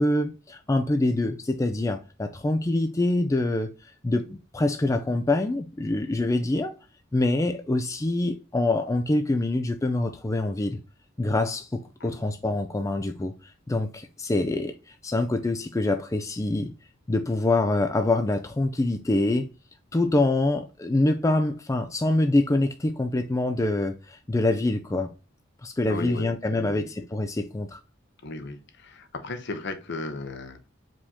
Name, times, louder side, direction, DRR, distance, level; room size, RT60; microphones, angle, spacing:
voice 1, 0.0-3.7 4.0-6.8 7.1-10.8 11.2-16.7 17.1-19.5 19.9-25.1 25.6-27.8, left 2 dB, 15° left, 0.4 m, -25 dB
voice 2, 25.9-26.9 28.2-30.6, left 2 dB, 60° left, 0.8 m, -35 dB
5.0 x 3.6 x 2.8 m
head